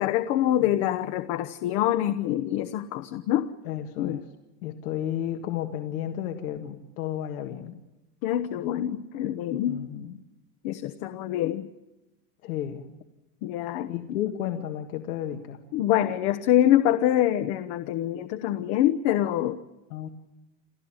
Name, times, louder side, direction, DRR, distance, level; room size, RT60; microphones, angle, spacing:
voice 1, 0.0-3.5 4.0-4.2 8.2-9.8 10.6-11.7 13.4-13.9 15.7-19.6, left 12 dB, 55° left, 9 dB, 1.1 m, -25 dB
voice 2, 3.7-4.2 4.6-7.8 9.7-10.2 12.4-12.9 13.9-15.6 19.9-20.1, left 11 dB, 80° left, 4 dB, 1.9 m, -32 dB
29.0 x 13.5 x 8.9 m, 0.99 s
supercardioid pair, 140°, 43 cm